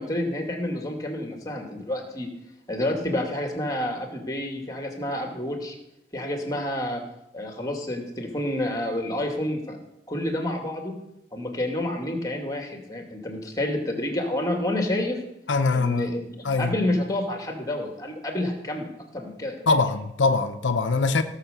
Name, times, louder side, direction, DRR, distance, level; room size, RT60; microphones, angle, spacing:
voice 1, 0.0-2.3 2.7-5.8 6.1-7.0 7.3-9.8 10.1-11.0 11.3-15.2 15.7-16.2 16.6-19.7, left 1 dB, 20° left, 3 dB, 2.2 m, -29 dB
voice 2, 15.5-16.1 16.4-16.8 19.7-21.2, left 3 dB, 80° left, 8 dB, 0.7 m, -22 dB
17.0 x 6.6 x 6.8 m, 0.83 s
head